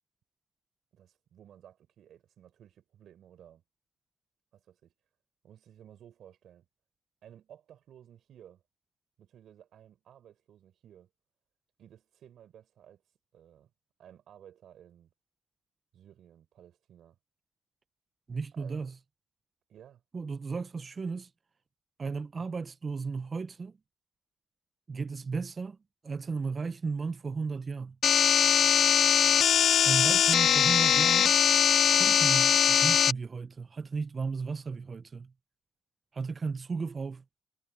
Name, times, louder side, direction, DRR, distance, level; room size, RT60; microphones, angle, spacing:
voice 1, 0.9-3.6 4.5-4.9 5.4-6.7 7.2-8.6 9.2-11.1 11.8-13.7 14.0-15.1 15.9-17.2 18.5-19.0 19.7-20.0 29.2-29.5, right 10 dB, 70° right, 4.8 m, -56 dB
voice 2, 18.3-18.9 20.1-21.3 22.0-23.8 24.9-25.8 26.0-28.0 29.8-31.3 31.9-35.3 36.1-37.2, right 4 dB, 35° right, 0.7 m, -34 dB
sound 1, 28.0-33.1, left 9 dB, 60° left, 0.4 m, -22 dB
cardioid pair, 90°, 0 cm